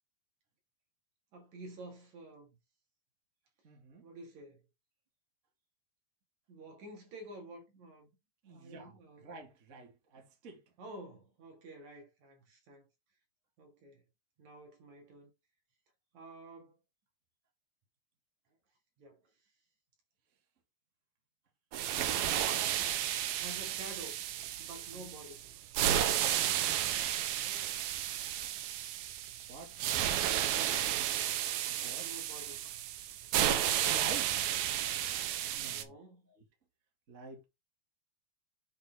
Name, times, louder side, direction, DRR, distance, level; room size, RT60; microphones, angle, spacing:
voice 1, 1.3-2.6 4.0-4.6 6.5-8.1 8.5-9.3 10.8-12.9 13.6-14.0 14.4-15.3 16.1-16.8 19.0-19.2 22.3-22.9 23.3-24.2 24.6-25.5 31.7-32.6 35.6-36.3, right 2 dB, 55° right, 3.1 m, -50 dB
voice 2, 3.6-4.0 8.4-8.9 9.2-10.6 24.9-25.1 27.3-27.8 29.5-31.0 31.7-32.0 33.8-34.3 35.5-35.9 37.1-37.4, right 3 dB, 30° right, 1.6 m, -49 dB
sound 1, 21.7-35.8, right 11 dB, 85° right, 2.6 m, -33 dB
8.2 x 4.4 x 3.4 m
omnidirectional pair, 4.2 m